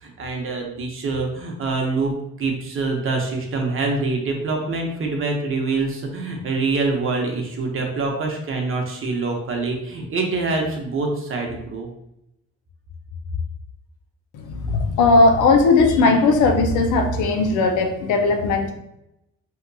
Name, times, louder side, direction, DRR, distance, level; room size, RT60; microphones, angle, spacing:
voice 1, 0.0-2.1 2.4-11.9, right 3 dB, 45° right, 2 dB, 0.7 m, -25 dB
voice 2, 14.3-18.7, left 3 dB, 80° left, 5 dB, 0.5 m, -17 dB
2.8 x 2.5 x 2.2 m, 0.83 s
cardioid pair, 90°, 30 cm